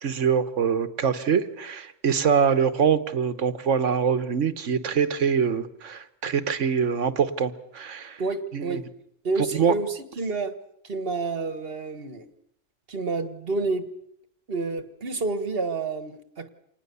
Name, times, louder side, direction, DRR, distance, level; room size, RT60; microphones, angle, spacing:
voice 1, 0.0-8.2 8.5-8.8 9.6-9.7, right 6 dB, 85° right, 12 dB, 1.5 m, -24 dB
voice 2, 8.2-8.8 9.2-10.5 10.8-12.2 12.9-13.9 14.5-16.5, right 3 dB, 50° right, 10 dB, 1.7 m, -29 dB
26.0 x 19.5 x 7.0 m, 0.72 s
omnidirectional pair, 1.2 m